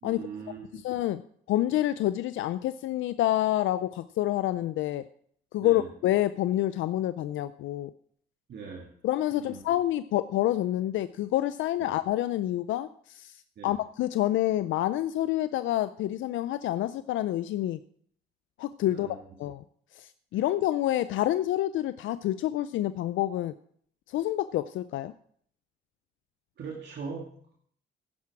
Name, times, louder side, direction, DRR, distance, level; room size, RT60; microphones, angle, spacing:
voice 1, 0.0-0.8 5.6-5.9 8.5-8.9 9.3-9.6 13.6-13.7 18.9-19.2 20.3-20.4 26.6-27.5, right 5 dB, 60° right, -2 dB, 2.1 m, -41 dB
voice 2, 0.8-1.2 1.5-5.0 5.5-7.9 9.0-17.8 18.6-19.6 19.9-23.5 24.1-25.1, left 14 dB, 80° left, 13 dB, 0.4 m, -28 dB
10.5 x 9.7 x 4.8 m, 0.62 s
cardioid pair, 90°, 20 cm